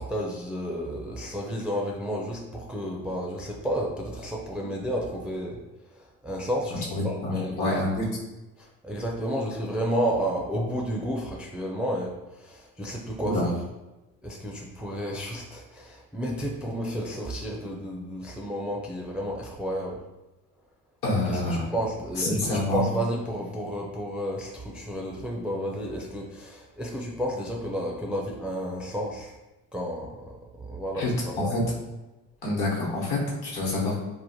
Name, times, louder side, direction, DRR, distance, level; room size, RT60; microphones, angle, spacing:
voice 1, 0.0-5.6 6.0-7.8 8.6-13.4 14.2-20.0 21.3-29.3 29.7-30.2 30.6-31.1 31.4-31.5, equal, 5° right, -1 dB, 0.4 m, -31 dB
voice 2, 6.9-8.1 13.2-13.6 21.0-21.7 22.1-22.9 30.9-31.6 32.4-34.0, left 2 dB, 60° left, -3 dB, 1.1 m, -27 dB
3.0 x 2.1 x 2.7 m, 1.1 s
hypercardioid pair, 50°, 43 cm